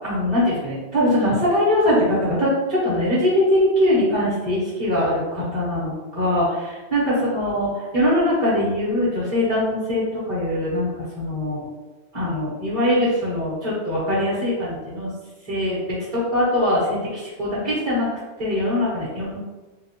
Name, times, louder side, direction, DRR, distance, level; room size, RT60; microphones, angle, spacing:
voice 1, 0.0-11.7 12.1-15.1 15.4-18.1 18.4-19.4, left 1 dB, 30° right, -10 dB, 1.3 m, -22 dB
3.7 x 2.6 x 2.9 m, 1.2 s
omnidirectional pair, 1.2 m